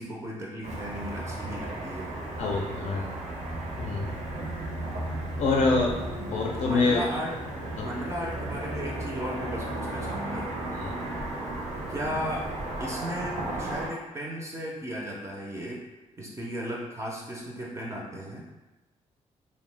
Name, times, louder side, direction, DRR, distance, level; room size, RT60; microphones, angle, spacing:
voice 1, 0.0-2.1 6.1-7.3 7.8-10.5 11.9-12.5 12.8-15.8 16.2-18.5, equal, 20° right, -3 dB, 0.5 m, -35 dB
Car passing by / Traffic noise roadway noise, 0.6-13.9, right 1 dB, 65° right, 0.6 m, -35 dB
voice 2, 2.4-3.1 3.8-4.1 5.4-5.9 6.3-7.0 7.8-7.9 10.8-10.9, left 3 dB, 65° left, 0 dB, 0.4 m, -26 dB
2.6 x 2.1 x 3.2 m, 1.1 s
cardioid pair, 95°, 13 cm